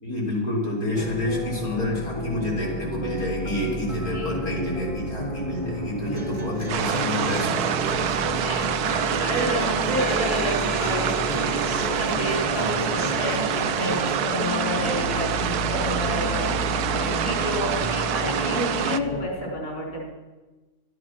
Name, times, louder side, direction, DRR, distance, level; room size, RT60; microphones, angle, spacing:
voice 1, 0.0-8.2, left 1 dB, 65° left, -3 dB, 3.7 m, -28 dB
sound 1, 0.9-19.3, left 1 dB, 25° left, 1.2 m, -32 dB
sound 2, 6.1-14.1, right 2 dB, 25° right, 1.4 m, -34 dB
sound 3, 6.7-19.0, right 9 dB, 80° right, 1.2 m, -26 dB
voice 2, 8.3-8.7 9.2-11.6 12.0-20.1, left 1 dB, 85° left, -3 dB, 4.7 m, -30 dB
12.5 x 10.5 x 6.0 m, 1.2 s
omnidirectional pair, 1.6 m